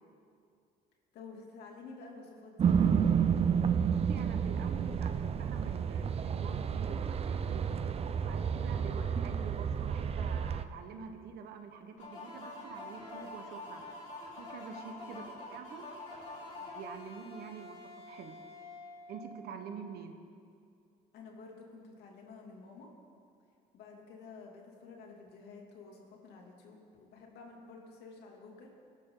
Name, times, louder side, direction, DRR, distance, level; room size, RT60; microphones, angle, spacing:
voice 1, 1.1-3.1 8.8-9.2 15.0-15.3 21.1-22.9 23.7-28.7, left 4 dB, 75° left, 0 dB, 3.0 m, -51 dB
sound 1, 2.6-10.6, right 7 dB, 35° right, 0.6 m, -30 dB
voice 2, 3.9-7.7 8.2-13.8 14.3-15.2 15.5-15.9 16.4-17.8 18.0-18.3 19.1-20.1, right 6 dB, 70° right, 6 dB, 1.5 m, -46 dB
sound 2, 12.0-19.6, left 2 dB, 45° left, 4.0 m, -47 dB
23.0 x 12.5 x 4.1 m, 2.4 s
cardioid pair, 110°, 17 cm